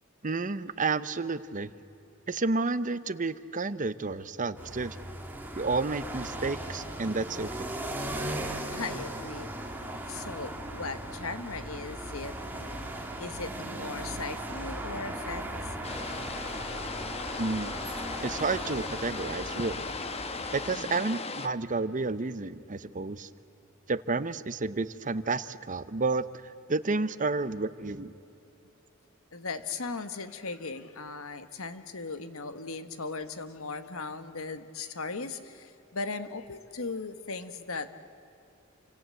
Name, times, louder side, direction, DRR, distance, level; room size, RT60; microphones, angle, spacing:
voice 1, 0.2-1.7 2.3-5.0 5.6-7.5 17.4-17.7 18.2-19.9 20.5-23.3 23.9-26.2 26.7-28.1, right 3 dB, 40° right, 14 dB, 0.8 m, -30 dB
sound 1, 4.6-20.7, right 1 dB, 10° right, 2.6 m, -38 dB
voice 2, 8.7-9.5 10.1-12.9 13.2-15.9 20.7-21.0 29.3-37.9, left 3 dB, 75° left, 10 dB, 1.5 m, -38 dB
sound 2, 15.8-21.5, left 4 dB, 30° left, 1.1 m, -37 dB
29.5 x 25.5 x 7.8 m, 2.8 s
head